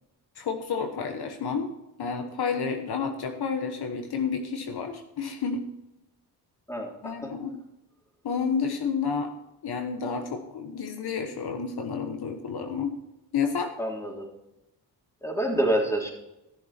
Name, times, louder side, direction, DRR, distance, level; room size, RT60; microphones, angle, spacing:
voice 1, 0.4-1.7 2.0-5.7 7.0-7.6 8.2-9.3 9.6-13.0 13.3-13.7, left 6 dB, 70° left, 6 dB, 1.3 m, -30 dB
voice 2, 6.7-7.3 13.8-14.3 15.2-16.1, right 1 dB, 5° left, -1 dB, 3.4 m, -27 dB
15.0 x 7.0 x 4.3 m, 0.91 s
cardioid pair, 75°, 40 cm